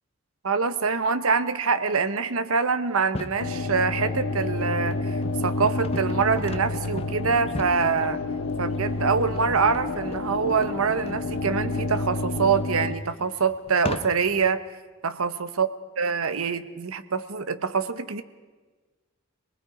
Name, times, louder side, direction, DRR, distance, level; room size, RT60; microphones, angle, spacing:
voice 1, 0.4-5.2 5.4-8.2 8.6-14.6 15.0-15.7 16.0-18.2, right 5 dB, 85° right, 11 dB, 0.9 m, -25 dB
sound 1, 3.0-3.5 4.1-14.4, left 2 dB, 30° left, 0.7 m, -40 dB
sound 2, 3.4-12.9, left 2 dB, 80° left, 0.9 m, -29 dB
27.0 x 19.5 x 5.0 m, 1.3 s
head